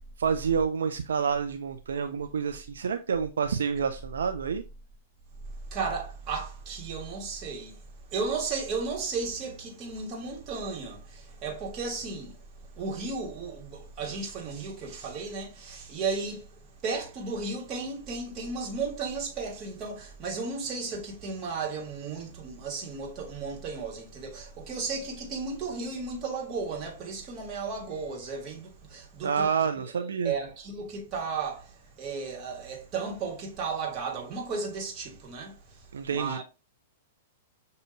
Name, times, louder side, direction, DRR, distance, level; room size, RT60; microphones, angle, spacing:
voice 1, 0.2-4.6 29.2-30.3 35.9-36.4, right 6 dB, 80° right, 0.4 m, -28 dB
voice 2, 5.7-7.8 8.1-29.5 30.0-35.8 36.1-36.4, right 4 dB, 35° right, 1.6 m, -34 dB
6.4 x 2.7 x 2.6 m
hypercardioid pair, 110°, 0 cm